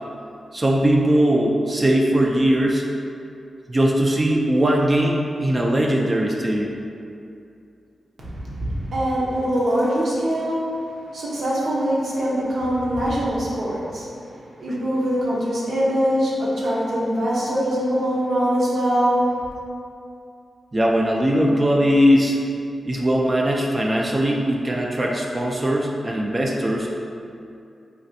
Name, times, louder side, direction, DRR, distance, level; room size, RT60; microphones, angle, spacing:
voice 1, 0.5-2.8 3.7-6.7 20.7-22.4 22.9-26.9, equal, 35° right, -1 dB, 0.4 m, -20 dB
voice 2, 8.2-10.7 11.1-14.1 14.4-19.3, equal, 75° right, -6 dB, 0.7 m, -23 dB
3.2 x 2.4 x 2.6 m, 2.5 s
cardioid pair, 45°, 0 cm